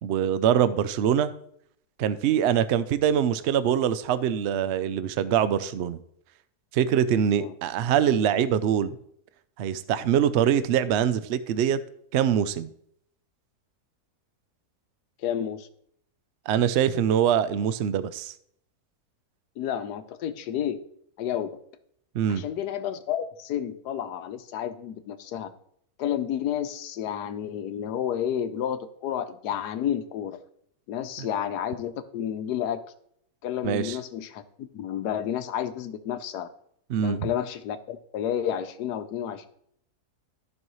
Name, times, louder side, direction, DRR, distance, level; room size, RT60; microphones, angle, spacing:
voice 1, 0.0-1.3 2.0-6.0 6.7-9.0 9.6-11.8 12.1-12.7 16.5-18.3 22.1-22.4 31.2-31.3 33.6-34.0 36.9-37.3, right 9 dB, 70° right, 14 dB, 0.6 m, -24 dB
voice 2, 15.2-15.7 19.6-20.8 21.2-21.6 22.3-25.5 26.0-30.4 30.9-32.8 33.4-36.5 37.0-39.5, left 10 dB, 85° left, 11 dB, 1.3 m, -31 dB
14.0 x 5.5 x 3.1 m, 0.70 s
omnidirectional pair, 1.7 m